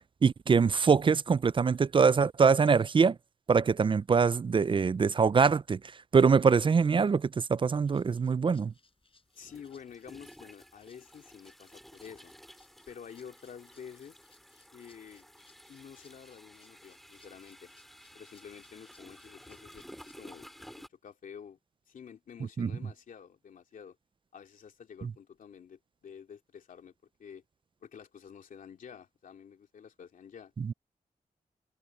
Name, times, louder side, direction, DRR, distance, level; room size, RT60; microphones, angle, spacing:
voice 1, 0.2-3.2 3.5-5.8 6.1-8.7 22.6-22.7 25.0-25.1 30.6-30.7, right 5 dB, 40° right, 0.4 m, -24 dB
Rattle (instrument), 7.8-20.4, left 4 dB, 40° left, 7.3 m, -67 dB
sound 1, 7.9-8.0 9.4-20.9, equal, ahead, 2.2 m, -53 dB
voice 2, 9.3-12.3 12.9-14.2 14.7-15.3 15.7-17.7 18.1-21.6 21.9-24.0 24.3-26.9 27.2-27.4 27.8-30.5, left 7 dB, 85° left, 2.8 m, -49 dB
wide cardioid pair, 85°, 14 cm